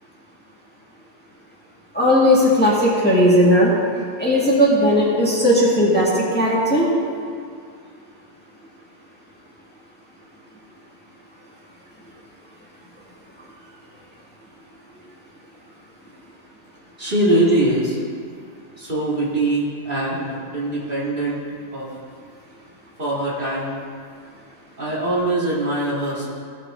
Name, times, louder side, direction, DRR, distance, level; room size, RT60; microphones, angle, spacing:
voice 1, 1.9-3.7 4.2-6.9, equal, 10° left, -7 dB, 2.0 m, -16 dB
voice 2, 17.0-18.0 18.8-21.4 21.7-21.9 23.0-23.8 24.8-26.3, right 1 dB, 45° right, -7 dB, 2.3 m, -22 dB
16.5 x 6.6 x 3.7 m, 2.2 s
omnidirectional pair, 1.3 m